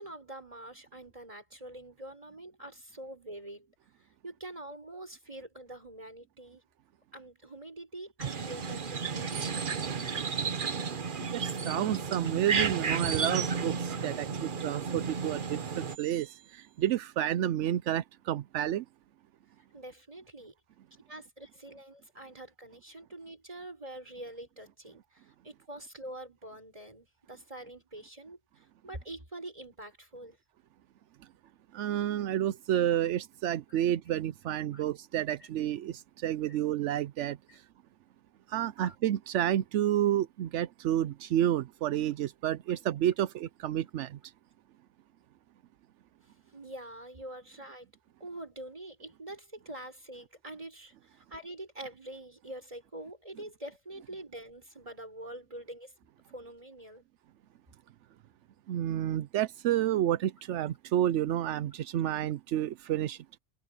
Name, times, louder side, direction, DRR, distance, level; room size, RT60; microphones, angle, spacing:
voice 1, 0.0-3.7 4.2-6.6 7.1-9.3 19.7-20.5 21.1-25.0 25.4-30.4 33.7-33.8 34.7-34.8 35.4-35.5 36.5-36.6 37.5-37.6 38.8-38.9 46.5-47.9 48.2-55.9 56.3-57.0, right 1 dB, 30° right, 6.0 m, -45 dB
sound 1, 8.2-16.0, right 5 dB, 50° right, 1.1 m, -32 dB
voice 2, 11.2-18.8 31.7-37.4 38.5-44.2 58.7-63.2, right 11 dB, 85° right, 0.9 m, -30 dB
omnidirectional pair, 1.2 m